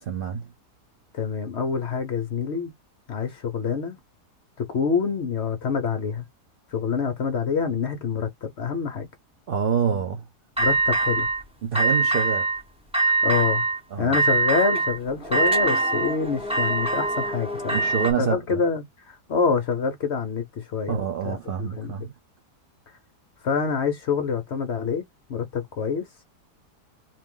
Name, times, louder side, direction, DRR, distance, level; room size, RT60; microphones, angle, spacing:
voice 1, 0.0-0.5 9.5-10.3 11.6-12.5 13.9-14.2 17.7-18.6 20.9-22.1, right 7 dB, 75° right, 0.5 m, -27 dB
voice 2, 1.1-2.7 3.1-4.0 4.6-6.3 6.7-9.1 10.6-11.3 13.2-13.6 14.0-17.8 18.2-21.9 23.4-25.0 25.3-26.0, left 5 dB, 55° left, 0.8 m, -26 dB
sound 1, 10.6-11.4 11.8-12.6 12.9-13.8 14.1-18.1, right 2 dB, 5° right, 0.4 m, -23 dB
3.0 x 2.6 x 3.6 m
omnidirectional pair, 1.7 m